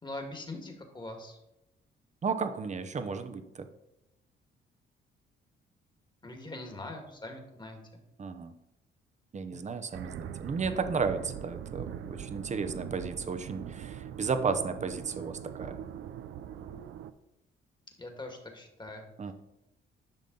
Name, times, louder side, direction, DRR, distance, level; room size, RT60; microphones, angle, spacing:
voice 1, 0.0-1.4 6.2-7.8 18.0-19.3, left 2 dB, 20° left, 3 dB, 2.0 m, -42 dB
voice 2, 2.2-3.7 8.2-8.5 9.3-15.8 19.2-19.3, right 5 dB, 35° right, 8 dB, 0.9 m, -33 dB
sound 1, 9.9-17.1, right 9 dB, 75° right, 0.6 m, -42 dB
10.5 x 6.1 x 4.0 m, 0.89 s
cardioid pair, 90°, 20 cm